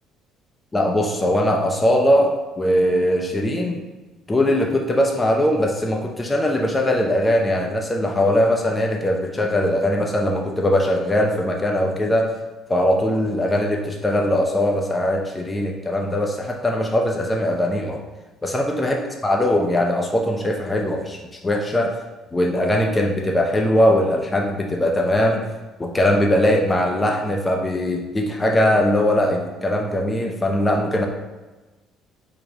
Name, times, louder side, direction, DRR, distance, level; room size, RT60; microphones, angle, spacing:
voice 1, 0.7-3.8 4.3-12.3 12.7-18.0 18.4-19.0 19.2-21.9 22.3-25.5 25.8-31.1, left 1 dB, 20° left, 1 dB, 0.5 m, -20 dB
3.4 x 2.3 x 3.9 m, 1.2 s
supercardioid pair, 75°, 0 cm